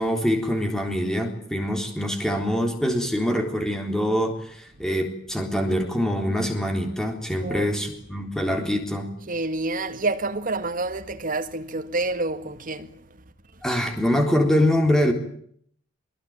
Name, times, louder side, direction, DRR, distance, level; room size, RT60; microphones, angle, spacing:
voice 1, 0.0-9.1 13.6-15.1, equal, 5° left, 3.7 m, -24 dB
voice 2, 7.4-7.7 9.3-13.0, right 2 dB, 45° right, 1.9 m, -28 dB
24.0 x 22.0 x 8.9 m
head